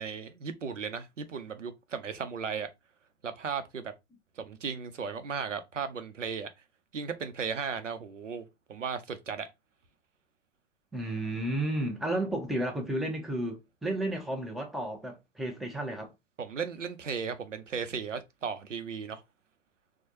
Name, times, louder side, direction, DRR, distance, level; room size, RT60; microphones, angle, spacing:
voice 1, 0.0-2.7 3.2-3.9 4.4-6.5 6.9-9.5 16.4-19.2, right 6 dB, 85° right, 0.8 m, -36 dB
voice 2, 10.9-16.1, right 1 dB, ahead, 0.7 m, -32 dB
4.5 x 2.3 x 2.6 m
figure-of-eight pair, 105°, 36 cm